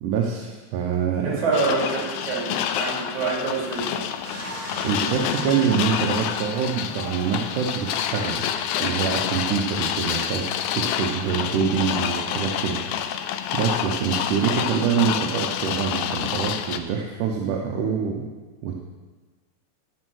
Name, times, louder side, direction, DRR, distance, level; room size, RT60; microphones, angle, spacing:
voice 1, 0.0-1.4 4.8-8.4 8.8-10.5 10.7-12.8 13.5-18.3 18.6-18.8, right 7 dB, 85° right, 0 dB, 2.5 m, -25 dB
voice 2, 1.2-4.1, right 4 dB, 70° right, -3 dB, 4.3 m, -26 dB
sound 1, 1.5-16.8, left 9 dB, 80° left, 2.0 m, -28 dB
sound 2, 4.2-9.2 9.8-9.9, equal, 5° right, 3.1 m, -38 dB
15.0 x 5.5 x 6.3 m, 1.3 s
omnidirectional pair, 3.5 m